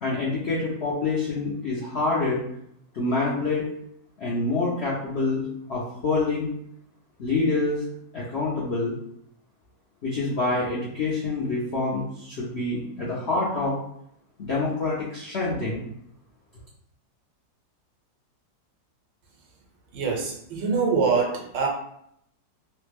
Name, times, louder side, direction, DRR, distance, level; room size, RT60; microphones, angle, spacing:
voice 1, 0.0-2.4 2.9-3.7 4.2-5.4 5.7-6.5 7.2-7.8 8.1-8.9 10.0-13.8 14.4-15.8, left 3 dB, 75° left, -7 dB, 0.6 m, -26 dB
voice 2, 19.9-21.7, right 5 dB, 85° right, 0 dB, 1.4 m, -24 dB
3.2 x 2.1 x 3.2 m, 0.72 s
omnidirectional pair, 1.9 m